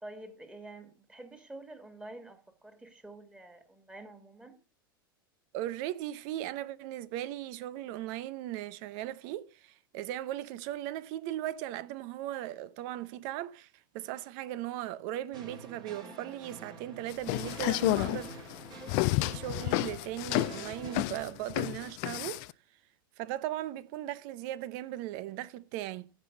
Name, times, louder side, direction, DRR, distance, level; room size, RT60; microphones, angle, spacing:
voice 1, 0.0-4.6, right 2 dB, 10° right, 2.4 m, -48 dB
voice 2, 5.5-13.7 13.9-18.5 19.2-22.5 23.2-26.1, right 13 dB, 55° right, 0.8 m, -38 dB
sound 1, 15.3-21.0, right 3 dB, 35° right, 3.0 m, -48 dB
sound 2, 17.1-22.5, left 22 dB, 50° left, 0.4 m, -30 dB
15.0 x 5.5 x 3.9 m
hypercardioid pair, 100°, 12 cm